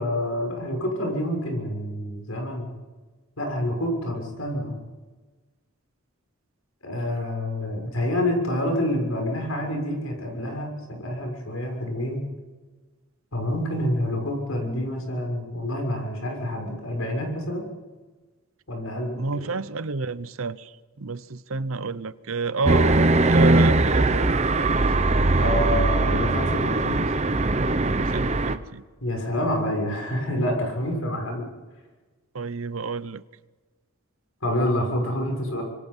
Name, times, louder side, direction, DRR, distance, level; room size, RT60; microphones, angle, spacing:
voice 1, 0.0-2.7 3.4-4.8 6.8-12.2 13.3-17.7 18.7-19.5 25.4-27.1 29.0-31.5 34.4-35.6, left 1 dB, 80° left, 2 dB, 6.6 m, -27 dB
voice 2, 19.2-24.7 28.1-28.8 32.3-33.2, right 4 dB, 75° right, 15 dB, 0.8 m, -30 dB
sound 1, 22.7-28.6, right 2 dB, 30° right, 0.8 m, -20 dB
26.0 x 23.0 x 5.6 m, 1.3 s
head